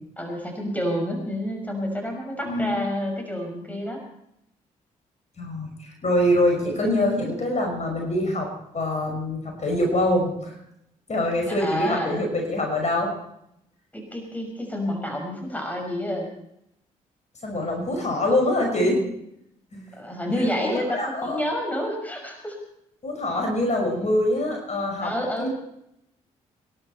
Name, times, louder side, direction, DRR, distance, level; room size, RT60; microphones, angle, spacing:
voice 1, 0.2-4.0 11.5-12.1 13.9-16.3 20.0-22.6 25.0-25.5, equal, 10° left, 2 dB, 5.9 m, -29 dB
voice 2, 5.4-8.5 8.7-10.5 11.1-13.1 17.4-19.1 19.7-19.8 20.6-21.4 23.0-25.1 25.4-25.5, left 1 dB, 40° left, 1 dB, 5.9 m, -24 dB
25.0 x 11.5 x 4.5 m, 0.76 s
hypercardioid pair, 45°, 17 cm